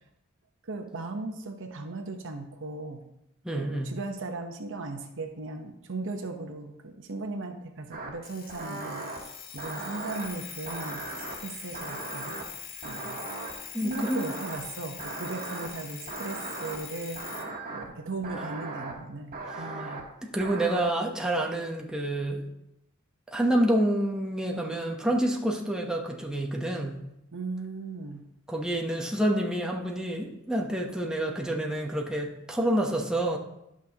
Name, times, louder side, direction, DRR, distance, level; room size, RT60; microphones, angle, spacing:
voice 1, 0.6-3.0 3.5-11.1 11.4-12.4 12.8-13.2 13.5-17.2 17.7-20.0 27.3-28.3, right 3 dB, 65° right, 5 dB, 0.9 m, -37 dB
voice 2, 3.4-3.9 13.7-14.3 20.2-22.5 23.3-27.0 28.5-33.4, right 1 dB, 5° right, -1 dB, 0.9 m, -28 dB
sound 1, 7.9-8.1 8.5-9.2 9.6-10.3 10.7-11.4 11.7-12.4 12.8-13.5 13.9-14.6 15.0-15.7 16.1-16.8 17.2-17.9 18.2-18.9 19.3-20.0 20.4-20.8, right 3 dB, 45° right, 1.4 m, -38 dB
Alarm, 8.2-17.5, left 7 dB, 45° left, 1.0 m, -43 dB
11.5 x 6.2 x 2.9 m, 0.84 s
head